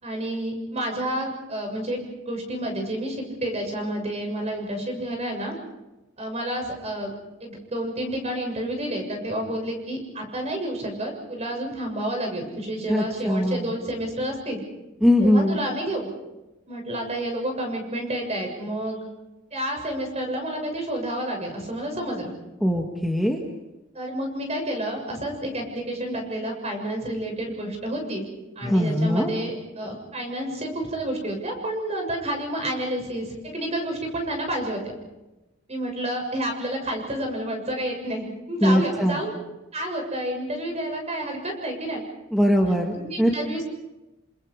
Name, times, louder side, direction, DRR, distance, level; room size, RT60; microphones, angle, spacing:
voice 1, 0.0-5.6 6.2-7.1 7.4-14.6 15.2-16.1 16.7-19.0 19.5-22.3 23.9-28.2 28.6-34.8 35.7-39.3 39.7-42.0 42.9-43.7, right 1 dB, 30° right, 2 dB, 7.1 m, -30 dB
voice 2, 12.9-13.7 15.0-15.6 22.6-23.4 28.6-29.3 38.6-39.2 42.3-43.3, equal, ahead, 0 dB, 1.8 m, -21 dB
29.0 x 27.5 x 4.9 m, 1.0 s
head